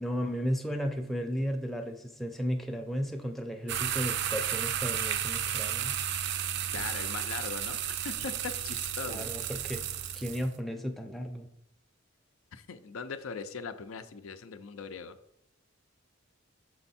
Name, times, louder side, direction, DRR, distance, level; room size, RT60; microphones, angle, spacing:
voice 1, 0.0-6.0 9.1-9.8 10.1-11.5, equal, ahead, 3 dB, 0.4 m, -34 dB
sound 1, 3.7-10.5, right 9 dB, 55° right, 0.4 m, -33 dB
voice 2, 6.7-9.3 12.5-15.2, left 5 dB, 75° left, 10 dB, 0.5 m, -40 dB
6.4 x 4.4 x 4.2 m, 0.75 s
head